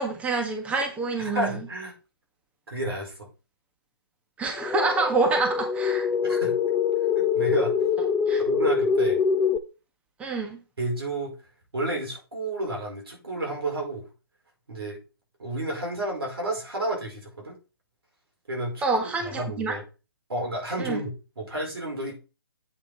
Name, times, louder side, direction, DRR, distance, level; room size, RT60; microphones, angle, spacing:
voice 1, 0.0-1.5 4.4-6.1 8.3-8.4 10.2-10.6 18.8-19.7 20.8-21.0, right 3 dB, 10° right, 4 dB, 1.6 m, -27 dB
voice 2, 1.2-1.9 2.7-3.3 6.2-6.6 7.3-7.8 8.4-9.2 10.8-11.3 11.7-14.0 14.7-15.0 15.4-17.6 18.5-19.8 20.3-22.2, right 1 dB, 75° right, 1 dB, 5.3 m, -31 dB
sound 1, 4.6-9.6, left 6 dB, 10° left, 0.4 m, -24 dB
8.5 x 6.1 x 4.3 m, 0.31 s
figure-of-eight pair, 145°, 13 cm